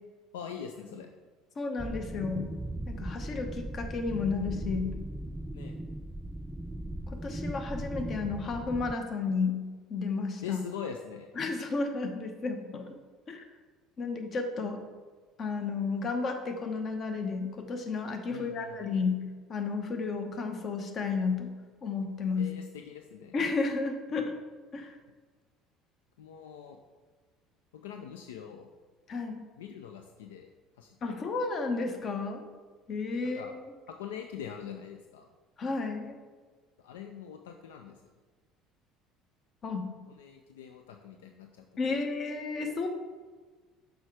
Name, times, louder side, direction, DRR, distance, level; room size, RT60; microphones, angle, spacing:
voice 1, 0.3-1.1 5.5-5.8 10.4-11.3 18.3-19.0 22.4-23.4 26.2-26.8 27.7-28.7 29.6-30.5 30.8-31.3 33.2-33.5 33.9-35.3 36.8-38.1 40.1-42.0, left 8 dB, 75° left, 5 dB, 0.4 m, -43 dB
voice 2, 1.6-2.4 2.9-4.9 7.1-9.6 9.9-10.6 11.4-12.9 13.3-13.4 14.0-14.8 15.4-19.2 19.5-21.5 21.8-22.5 23.3-24.3 24.7-25.0 29.1-29.4 31.0-32.4 32.9-33.5 35.6-36.2 39.6-39.9 41.8-42.9, left 4 dB, 40° left, 5 dB, 1.0 m, -32 dB
sound 1, 1.8-8.9, right 1 dB, 10° right, 0.3 m, -38 dB
6.1 x 4.7 x 4.8 m, 1.4 s
figure-of-eight pair, 60°, 0 cm